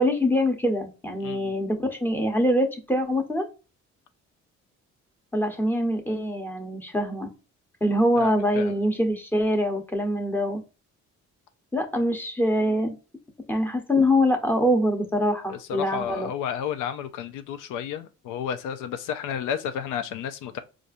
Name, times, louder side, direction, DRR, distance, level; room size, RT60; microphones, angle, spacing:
voice 1, 0.0-3.5 5.3-7.3 7.8-10.6 11.7-12.9 13.5-16.3, equal, 5° left, 0.9 m, -24 dB
voice 2, 1.2-1.5 8.2-8.3 8.6-8.7 15.5-20.6, left 8 dB, 90° left, 0.5 m, -31 dB
4.1 x 2.5 x 2.5 m
cardioid pair, 90°, 30 cm